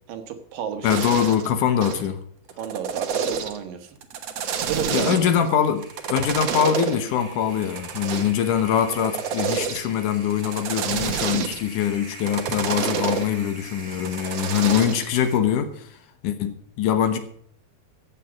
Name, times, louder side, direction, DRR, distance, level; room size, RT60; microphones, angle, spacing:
voice 1, 0.1-1.2 2.6-4.0 4.7-5.5, right 7 dB, 75° right, 3.1 m, -32 dB
voice 2, 0.8-2.2 4.9-16.0 16.2-17.2, left 9 dB, 70° left, 2.4 m, -23 dB
sound 1, 0.9-1.5 1.8-2.1 2.5-3.6 4.0-5.4 5.8-7.0 7.6-8.4 8.8-9.9 10.3-11.7 12.1-13.3 13.9-15.1, right 7 dB, 60° right, 1.8 m, -28 dB
sound 2, 5.0-15.4, right 2 dB, 40° right, 0.5 m, -44 dB
14.0 x 8.5 x 5.2 m
omnidirectional pair, 4.0 m